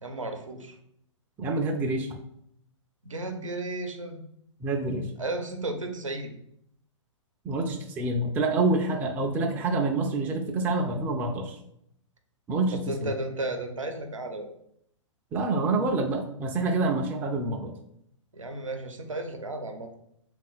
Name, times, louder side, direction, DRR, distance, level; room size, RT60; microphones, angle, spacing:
voice 1, 0.0-0.8 3.0-4.2 5.2-6.3 12.9-14.5 18.3-19.9, right 2 dB, 80° right, 5 dB, 0.7 m, -34 dB
voice 2, 1.4-2.1 4.6-5.1 7.4-11.6 12.5-13.1 15.3-17.8, right 3 dB, 10° right, 2 dB, 0.3 m, -27 dB
3.6 x 2.5 x 4.1 m, 0.72 s
figure-of-eight pair, 115°, 16 cm